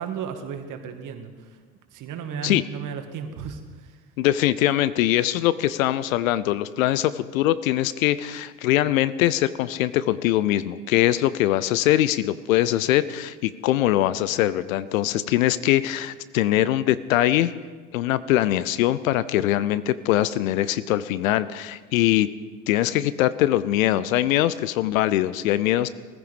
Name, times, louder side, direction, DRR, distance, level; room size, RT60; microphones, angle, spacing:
voice 1, 0.0-1.6 1.9-4.0, right 7 dB, 45° right, 6 dB, 2.1 m, -34 dB
voice 2, 4.2-17.5 17.9-22.3 22.7-25.9, left 14 dB, 65° left, 16 dB, 0.7 m, -22 dB
18.0 x 15.0 x 5.2 m, 1.4 s
figure-of-eight pair, 65°, 45 cm